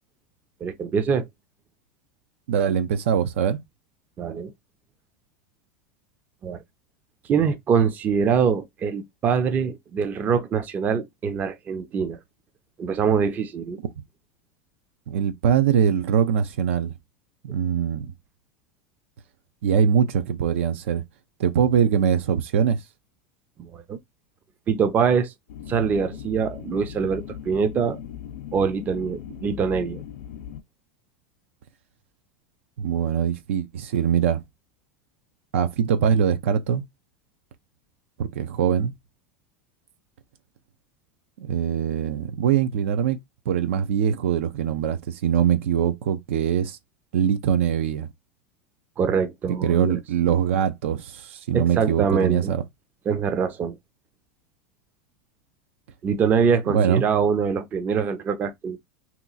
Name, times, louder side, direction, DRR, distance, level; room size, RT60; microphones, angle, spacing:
voice 1, 0.6-1.2 4.2-4.5 6.4-6.6 7.3-12.2 12.8-13.8 23.6-24.0 24.7-25.3 25.7-28.0 28.5-30.0 49.0-50.0 51.5-52.5 53.1-53.8 56.0-58.8, right 6 dB, 25° right, 0.5 m, -24 dB
voice 2, 2.5-3.6 15.1-16.9 17.4-18.1 19.6-21.0 21.4-22.8 32.8-34.4 35.5-36.8 38.2-38.9 41.4-43.2 43.5-46.8 47.1-48.1 49.5-52.6 56.7-57.0, right 8 dB, 80° right, 0.6 m, -22 dB
sound 1, 25.5-30.6, left 9 dB, 80° left, 0.5 m, -38 dB
2.9 x 2.4 x 3.8 m
supercardioid pair, 140°, 7 cm